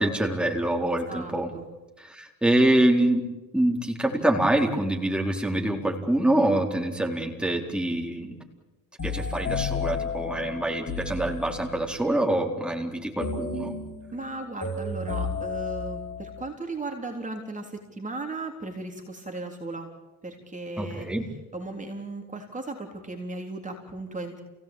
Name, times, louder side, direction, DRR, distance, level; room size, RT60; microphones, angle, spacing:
voice 1, 0.0-1.5 2.0-3.2 3.5-8.4 9.0-13.7 20.8-21.2, right 1 dB, 5° right, 1 dB, 4.3 m, -25 dB
voice 2, 1.1-1.7 2.7-2.9 14.1-19.9 20.2-21.1 21.5-24.4, right 2 dB, 20° right, 2 dB, 3.7 m, -36 dB
sound 1, 9.0-12.0 13.2-16.5, left 4 dB, 35° left, 6.7 m, -32 dB
29.0 x 17.5 x 8.9 m, 1.1 s
cardioid pair, 95°, 35 cm